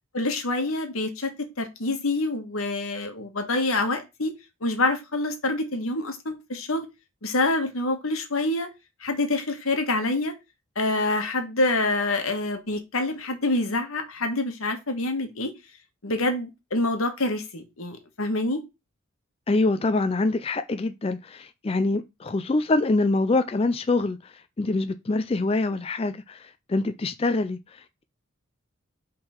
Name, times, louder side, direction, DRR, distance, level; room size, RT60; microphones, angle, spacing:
voice 1, 0.1-4.3 4.6-6.9 7.2-8.7 9.0-10.3 10.7-15.5 16.0-18.6, left 2 dB, 85° left, 1.6 m, -26 dB
voice 2, 19.5-28.0, left 2 dB, 25° left, 0.4 m, -25 dB
5.4 x 3.8 x 5.8 m
head